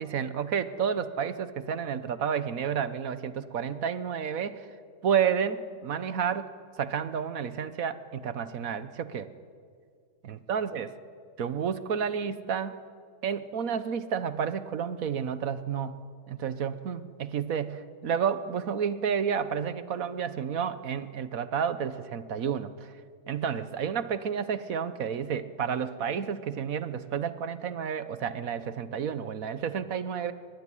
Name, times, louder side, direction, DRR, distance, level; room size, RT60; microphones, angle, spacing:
voice 1, 0.0-4.6 5.0-6.5 6.8-9.3 10.2-10.9 11.4-12.8 13.2-16.0 16.3-22.9 23.3-30.3, right 7 dB, 60° right, 13 dB, 1.3 m, -30 dB
22.5 x 21.5 x 10.0 m, 2.2 s
omnidirectional pair, 1.8 m